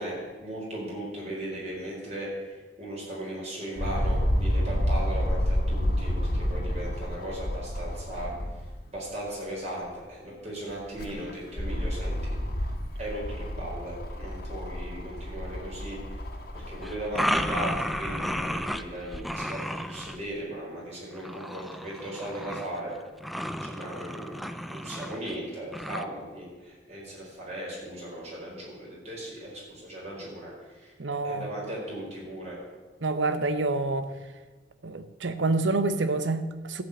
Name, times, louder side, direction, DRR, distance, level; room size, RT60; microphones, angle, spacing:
voice 1, 0.0-2.3 2.8-8.3 8.9-12.4 13.0-16.0 16.7-23.0 23.6-32.6, right 1 dB, 35° right, -4 dB, 4.7 m, -37 dB
sound 1, 3.8-8.8 9.3-9.4 10.7-19.2 20.0-20.1, equal, 55° left, 1.6 m, -30 dB
sound 2, 16.8-18.8 19.1-20.2 21.1-22.8 23.2-25.4 25.7-26.0, equal, ahead, 0.4 m, -32 dB
voice 2, 31.0-31.5 33.0-34.1 34.8-36.8, right 3 dB, 90° right, 11 dB, 0.9 m, -27 dB
13.5 x 5.3 x 8.4 m, 1.3 s
head